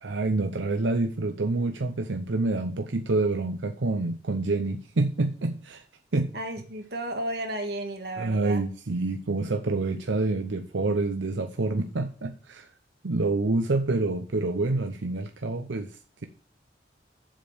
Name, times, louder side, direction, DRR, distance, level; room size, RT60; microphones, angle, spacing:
voice 1, 0.0-5.8 6.1-6.3 8.2-12.7 13.0-15.9, right 2 dB, 90° right, 6 dB, 0.7 m, -27 dB
voice 2, 6.3-8.6, right 1 dB, 60° right, 4 dB, 1.8 m, -33 dB
7.4 x 5.2 x 7.0 m, 0.39 s
head